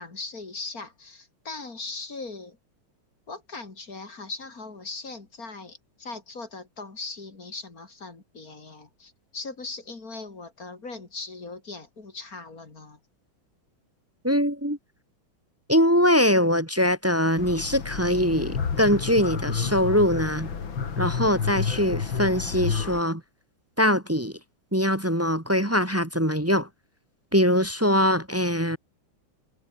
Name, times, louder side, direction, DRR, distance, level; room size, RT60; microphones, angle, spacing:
voice 1, 0.0-2.6 3.3-13.0, left 3 dB, 45° left, 3.9 m, -39 dB
voice 2, 14.2-14.8 15.7-20.5 21.0-23.2 23.8-24.3 24.7-26.7 27.3-28.8, equal, 10° right, 0.9 m, -22 dB
sound 1, 17.4-23.0, left 6 dB, 70° left, 3.1 m, -30 dB
omnidirectional pair, 2.2 m